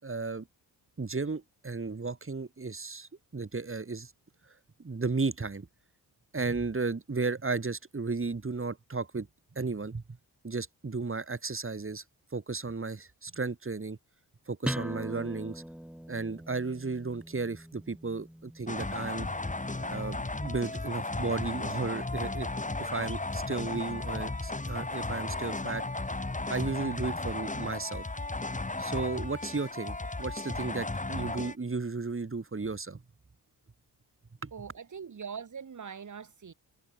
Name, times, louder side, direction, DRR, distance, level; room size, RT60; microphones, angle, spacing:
voice 1, 0.0-0.5 1.0-4.1 4.8-5.7 6.3-9.3 9.6-10.2 10.4-12.0 12.3-14.0 14.5-15.6 16.1-19.3 19.8-22.5 22.8-25.8 26.5-28.0 28.8-33.0 34.4-34.5, right 4 dB, 30° right, 5.5 m, -34 dB
sound 1, 14.6-20.0, equal, ahead, 2.1 m, -42 dB
sound 2, 18.7-31.5, left 2 dB, 20° left, 3.4 m, -35 dB
voice 2, 34.5-36.5, right 6 dB, 45° right, 2.6 m, -42 dB
cardioid pair, 70°, 40 cm